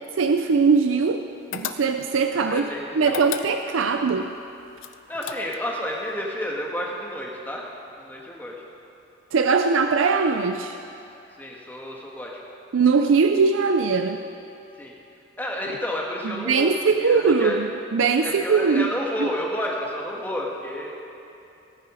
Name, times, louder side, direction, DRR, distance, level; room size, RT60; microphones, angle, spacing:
voice 1, 0.2-1.3 1.5-2.7 3.0-4.3 9.3-10.8 12.7-14.2 16.4-18.9, right 5 dB, 90° right, 7 dB, 0.5 m, -21 dB
sound 1, 1.5-2.2 3.0-3.9 4.8-5.8, left 8 dB, 85° left, 0.6 m, -33 dB
voice 2, 2.5-3.2 5.1-7.6 8.0-8.6 11.4-12.3 14.7-14.9 15.4-17.6 18.2-20.9, left 1 dB, 10° left, -2 dB, 1.5 m, -31 dB
17.5 x 9.7 x 5.0 m, 2.7 s
head